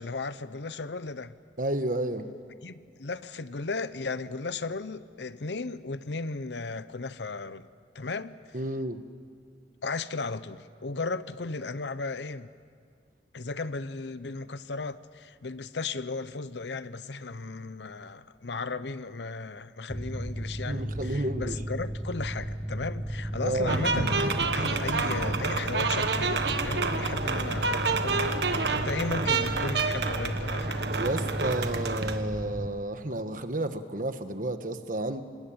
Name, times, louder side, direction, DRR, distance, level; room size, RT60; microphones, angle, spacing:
voice 1, 0.0-1.3 2.6-7.7 7.9-8.3 9.8-12.5 13.3-30.9, left 3 dB, 80° left, 14 dB, 0.8 m, -35 dB
voice 2, 1.6-2.3 8.5-9.0 20.7-21.6 23.4-23.8 31.0-35.2, right 1 dB, 50° right, 9 dB, 1.4 m, -31 dB
Mechanical fan, 19.9-32.7, equal, 10° right, 1.1 m, -34 dB
sound 1, 23.7-32.2, right 4 dB, 75° right, 1.4 m, -29 dB
26.5 x 20.5 x 8.8 m, 2.1 s
head